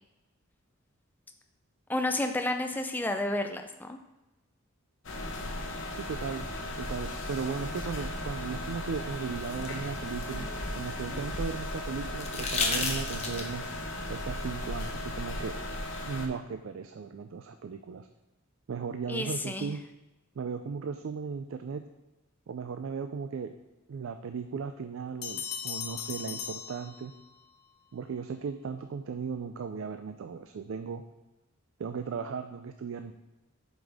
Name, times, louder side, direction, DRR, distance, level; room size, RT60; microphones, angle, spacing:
voice 1, 1.9-4.0 19.1-19.7, left 1 dB, 10° left, 5 dB, 0.4 m, -31 dB
sound 1, 5.0-16.3, left 1 dB, 55° left, 0.9 m, -36 dB
voice 2, 5.9-6.5 6.8-10.5 10.8-13.7 14.1-15.6 16.1-18.1 18.7-19.8 20.4-21.9 22.5-23.5 23.9-27.1 27.9-31.0 31.8-33.1, right 5 dB, 65° right, 8 dB, 0.3 m, -36 dB
sound 2, 9.0-11.3 12.2-13.7 15.4-15.5, left 4 dB, 30° left, 0.9 m, -34 dB
Bell, 25.2-27.5, left 8 dB, 85° left, 0.9 m, -38 dB
7.3 x 5.3 x 3.5 m, 1.0 s
head